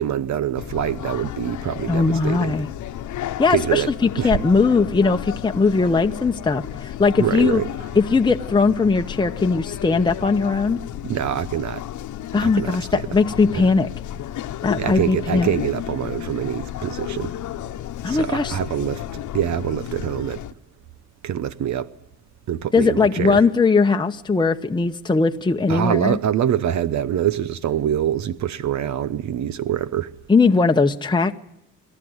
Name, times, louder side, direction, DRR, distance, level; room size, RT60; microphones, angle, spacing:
voice 1, 0.0-2.5 3.5-3.9 4.2-4.4 7.2-7.7 11.0-11.8 12.4-13.0 14.8-17.3 18.1-20.4 21.2-21.9 22.5-23.4 25.7-30.1, right 10 dB, 70° right, 0.9 m, -25 dB
sound 1, 0.5-20.5, left 12 dB, 75° left, 1.1 m, -33 dB
voice 2, 1.9-2.7 3.4-7.6 8.0-10.8 12.3-13.9 14.6-15.5 18.0-18.6 22.7-26.2 30.3-31.3, left 4 dB, 15° left, 0.9 m, -19 dB
26.5 x 12.5 x 9.7 m
cardioid pair, 90°, 30 cm